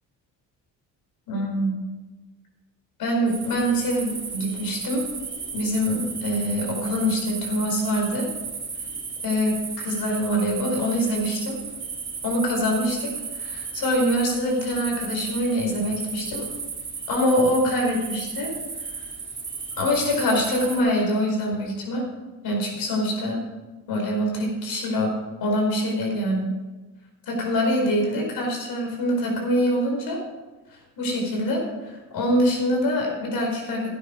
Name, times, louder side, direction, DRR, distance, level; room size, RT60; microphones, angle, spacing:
voice 1, 1.3-1.7 3.0-5.0 5.5-8.3 9.2-11.6 12.2-16.4 17.1-18.5 19.8-22.0 22.4-23.4 23.9-25.1 25.4-26.5 27.3-30.2 31.0-33.9, equal, 70° left, 0 dB, 5.0 m, -24 dB
sound 1, 3.3-20.8, right 5 dB, 30° right, 2.9 m, -34 dB
13.0 x 9.5 x 5.2 m, 1.2 s
cardioid pair, 85°, 37 cm